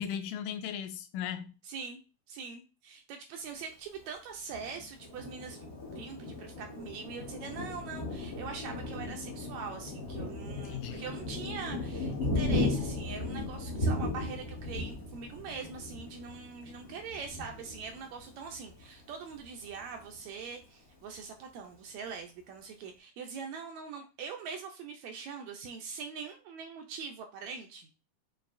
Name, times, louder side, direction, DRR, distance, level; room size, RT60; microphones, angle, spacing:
voice 1, 0.0-1.6 10.6-11.1, left 9 dB, 85° left, 2.1 m, -37 dB
voice 2, 1.6-2.0 2.3-27.9, right 5 dB, 75° right, 1.7 m, -43 dB
Thunder, 4.5-18.8 19.3-19.5 19.8-20.4, left 2 dB, 70° left, 0.5 m, -36 dB
6.6 x 2.8 x 2.5 m
omnidirectional pair, 3.4 m